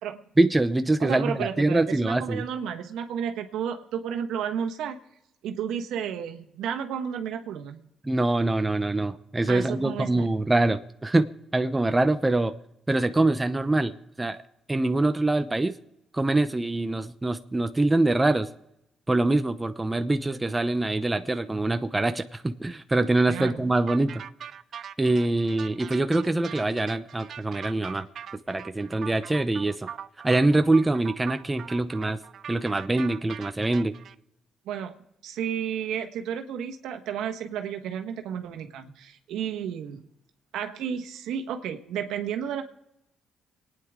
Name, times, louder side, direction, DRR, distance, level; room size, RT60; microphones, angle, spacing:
voice 1, 0.4-2.5 8.0-11.3 11.5-12.5 12.9-14.4 14.7-15.7 16.1-18.5 19.1-24.2 25.0-28.1 28.5-29.9 30.2-32.2 32.5-33.9, right 2 dB, 15° right, 8 dB, 0.8 m, -24 dB
voice 2, 1.0-5.0 5.4-7.8 9.5-10.3 23.3-23.6 34.6-34.9 35.2-40.1 40.5-42.6, right 8 dB, 85° right, 5 dB, 1.3 m, -32 dB
sound 1, 23.9-34.1, right 8 dB, 60° right, 0.6 m, -41 dB
27.0 x 9.6 x 3.7 m, 0.85 s
cardioid pair, 90°, 0 cm